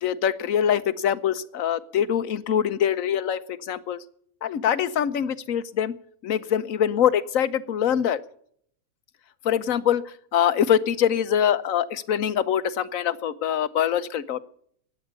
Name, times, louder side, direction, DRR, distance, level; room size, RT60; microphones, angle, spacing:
voice 1, 0.0-4.0 4.4-6.0 6.2-8.2 9.4-14.5, left 9 dB, 70° left, 14 dB, 1.2 m, -24 dB
15.5 x 9.9 x 8.1 m, 0.64 s
omnidirectional pair, 1.5 m